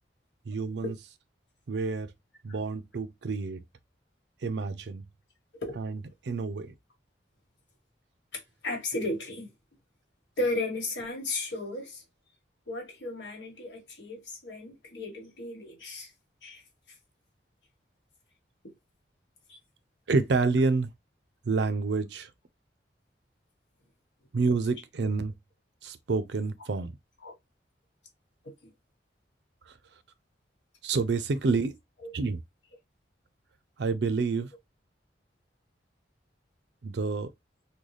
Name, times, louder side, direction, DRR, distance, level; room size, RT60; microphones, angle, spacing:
voice 1, 0.5-0.9 1.7-2.1 2.4-3.6 4.4-5.1 5.8-6.0 6.2-6.7 20.1-20.9 21.5-22.3 24.3-25.3 25.8-27.0 30.8-31.7 32.1-32.4 33.8-34.5 36.8-37.3, right 4 dB, 65° right, 0.5 m, -28 dB
voice 2, 8.3-9.5 10.4-12.0 12.7-16.1 16.4-16.6 19.5-19.6 27.2-27.3 28.6-28.7 32.0-32.1, left 2 dB, 75° left, 1.4 m, -34 dB
3.8 x 2.2 x 3.1 m
head